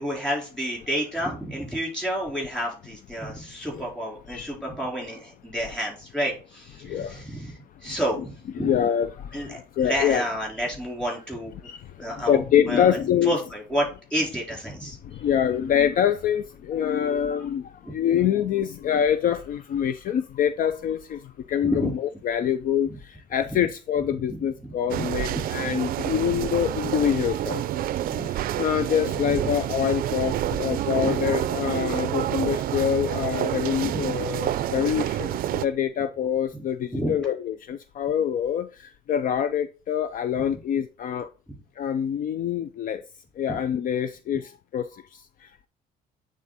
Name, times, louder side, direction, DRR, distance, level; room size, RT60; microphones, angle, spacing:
voice 1, 0.0-7.6 7.8-8.7 9.3-11.5 12.0-12.4 12.7-15.0 17.9-18.0 21.6-21.9 24.3-25.0 28.0-28.3 29.1-29.5 30.6-31.4 33.8-34.1 36.9-37.1 40.5-40.6 43.5-43.6, equal, 5° left, 3.8 m, -30 dB
voice 2, 6.8-7.2 7.8-8.0 8.6-10.2 11.6-13.4 15.0-27.9 28.3-41.3 41.8-43.0 43.4-45.7, left 9 dB, 55° left, 0.5 m, -26 dB
sound 1, 24.9-35.6, right 12 dB, 60° right, 0.4 m, -28 dB
8.6 x 3.7 x 4.0 m
cardioid pair, 110°, 17 cm